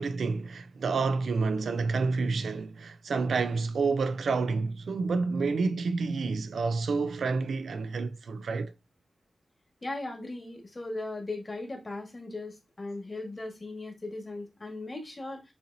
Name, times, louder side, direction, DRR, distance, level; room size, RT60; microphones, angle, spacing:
voice 1, 0.0-8.7, right 4 dB, 75° right, 0.4 m, -29 dB
voice 2, 9.8-15.5, left 2 dB, 25° left, 1.4 m, -38 dB
6.9 x 2.8 x 2.6 m
wide cardioid pair, 140°, 0 cm